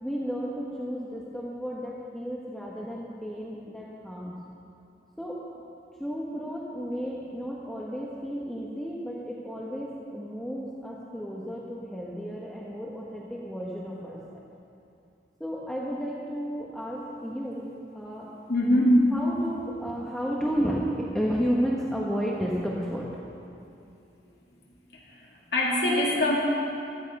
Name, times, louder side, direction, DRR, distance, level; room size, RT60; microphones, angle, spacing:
voice 1, 0.0-4.3 5.2-5.4 6.0-14.5 15.4-17.7 17.9-18.3 19.1-20.8 21.1-23.1, equal, 5° left, -5 dB, 1.1 m, -32 dB
voice 2, 18.5-19.1 24.9-26.4, left 1 dB, 65° left, -4 dB, 3.0 m, -23 dB
15.0 x 13.0 x 5.4 m, 2.6 s
head